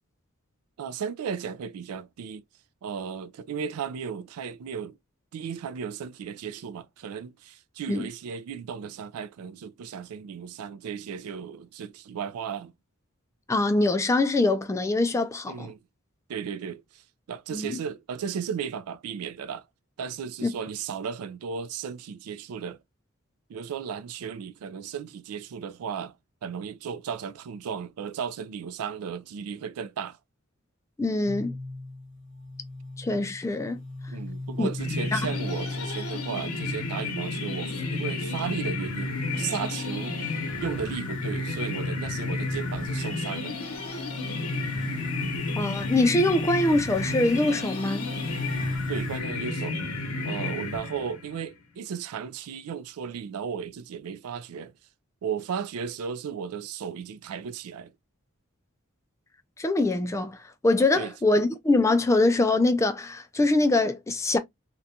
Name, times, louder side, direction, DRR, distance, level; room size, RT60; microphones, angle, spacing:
voice 1, 0.8-2.4 2.8-5.0 5.3-12.7 15.5-15.8 16.3-19.7 20.0-22.8 23.5-26.1 26.4-30.2 34.1-40.2 40.6-43.6 48.9-49.8 50.2-54.7 55.2-57.9 60.9-61.1, right 7 dB, 80° right, 0.3 m, -35 dB
voice 2, 13.5-15.7 17.5-17.8 20.4-20.5 31.0-31.6 33.0-33.8 34.6-34.7 35.1-35.2 45.6-48.1 59.6-60.4 60.6-64.4, left 2 dB, 15° left, 0.3 m, -23 dB
sound 1, 31.2-49.2, left 2 dB, 50° right, 1.0 m, -36 dB
sound 2, 34.8-51.4, left 3 dB, 85° left, 0.8 m, -33 dB
2.5 x 2.2 x 2.6 m
head